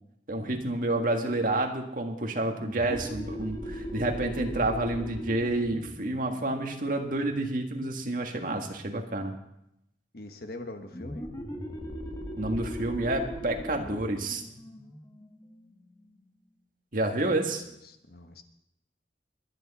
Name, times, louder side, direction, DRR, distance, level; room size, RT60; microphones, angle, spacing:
voice 1, 0.3-9.3 12.4-14.4 16.9-17.6, right 2 dB, 50° right, 3 dB, 1.8 m, -29 dB
sound 1, 2.6-7.9 10.9-16.2, equal, 20° left, 1.5 m, -39 dB
voice 2, 10.1-11.3 17.5-18.4, left 2 dB, 60° left, 7 dB, 1.3 m, -43 dB
22.5 x 9.2 x 4.2 m, 0.81 s
head